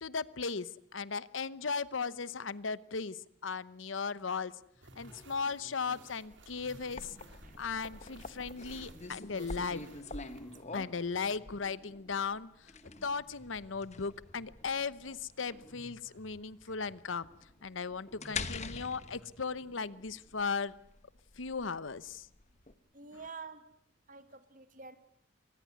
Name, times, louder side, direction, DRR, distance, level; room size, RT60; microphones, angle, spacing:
voice 1, 0.0-4.5 5.0-7.1 7.6-9.8 10.7-12.7 13.0-17.3 17.6-20.7 21.4-22.3, left 5 dB, 85° left, 17 dB, 0.9 m, -37 dB
sound 1, 4.7-6.1 6.5-20.4, equal, 15° left, 3.4 m, -60 dB
sound 2, 4.8-10.6, right 3 dB, 65° right, 4.1 m, -58 dB
sound 3, 6.2-22.7, left 4 dB, 35° left, 1.3 m, -46 dB
voice 2, 22.9-23.6 24.1-24.9, right 4 dB, 45° right, 10 dB, 2.3 m, -47 dB
24.5 x 19.5 x 9.4 m, 0.71 s
head